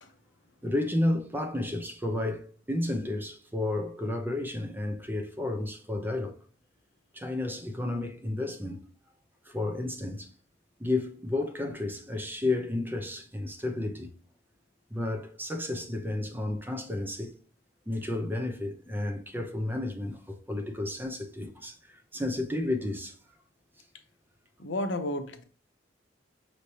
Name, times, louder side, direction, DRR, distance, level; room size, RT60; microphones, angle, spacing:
voice 1, 0.6-6.3 7.1-8.8 9.5-10.3 10.8-14.1 14.9-17.3 17.9-21.8 22.1-23.1, left 2 dB, 10° right, 0.7 m, -32 dB
voice 2, 24.6-25.4, left 1 dB, 85° left, 0.7 m, -32 dB
5.7 x 3.2 x 2.8 m
head